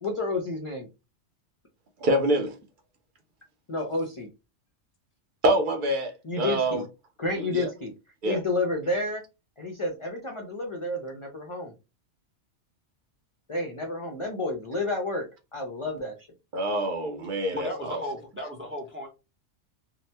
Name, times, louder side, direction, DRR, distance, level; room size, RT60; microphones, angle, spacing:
voice 1, 0.0-0.9 3.7-4.3 6.3-6.8 7.2-7.9 8.3-9.2 9.6-11.7 13.5-15.2 15.5-16.1, left 2 dB, 40° left, 0.4 m, -30 dB
voice 2, 2.0-2.6 5.4-6.8 7.4-7.7 8.2-8.4 16.5-18.0, right 1 dB, 50° right, 0.7 m, -26 dB
voice 3, 17.5-19.1, left 1 dB, 15° right, 0.4 m, -35 dB
2.8 x 2.2 x 3.3 m
omnidirectional pair, 1.3 m